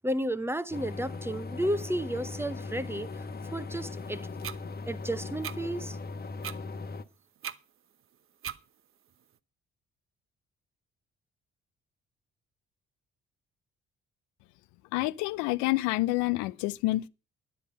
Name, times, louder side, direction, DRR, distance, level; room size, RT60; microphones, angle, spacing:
voice 1, 0.0-3.3 3.5-4.3 4.9-6.0, right 1 dB, 10° right, 0.8 m, -32 dB
sound 1, 0.7-7.0, left 3 dB, 30° left, 1.2 m, -39 dB
sound 2, 4.4-4.6 5.4-5.6 6.4-6.6 7.4-7.6 8.4-8.6, right 9 dB, 45° right, 0.9 m, -37 dB
voice 2, 14.9-17.1, left 19 dB, 65° left, 0.6 m, -28 dB
11.5 x 9.9 x 5.4 m
figure-of-eight pair, 45°, 31 cm